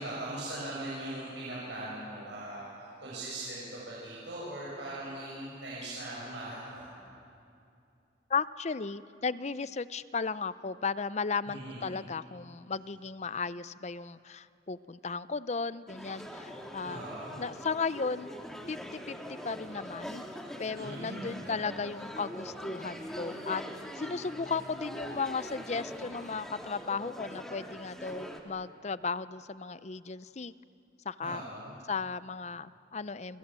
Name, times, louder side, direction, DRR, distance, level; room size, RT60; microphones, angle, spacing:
voice 1, 0.0-2.7 3.0-6.9 11.4-11.9 16.8-17.4 20.7-21.5 31.2-31.7, right 1 dB, 85° right, -7 dB, 7.4 m, -40 dB
voice 2, 8.3-17.1 17.4-18.3 18.7-20.2 20.6-23.6 24.0-30.5 31.1-31.4 31.9-33.4, left 5 dB, 40° left, 16 dB, 0.6 m, -35 dB
sound 1, 15.9-28.4, equal, 5° left, 2.2 m, -43 dB
29.0 x 26.5 x 7.6 m, 2.6 s
head